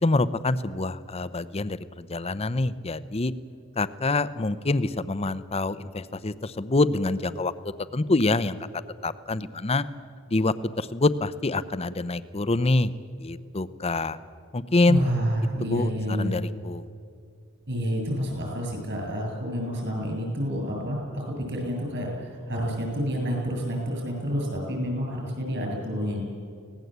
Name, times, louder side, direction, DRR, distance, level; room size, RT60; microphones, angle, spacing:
voice 1, 0.0-3.3 3.8-8.6 9.0-9.8 10.3-12.9 13.2-14.2 14.5-15.0 15.7-16.8, left 2 dB, 25° left, 14 dB, 0.7 m, -26 dB
voice 2, 14.9-16.3 17.7-21.2 21.5-26.2, equal, 55° right, 0 dB, 8.0 m, -29 dB
24.5 x 19.0 x 8.1 m, 2.3 s
head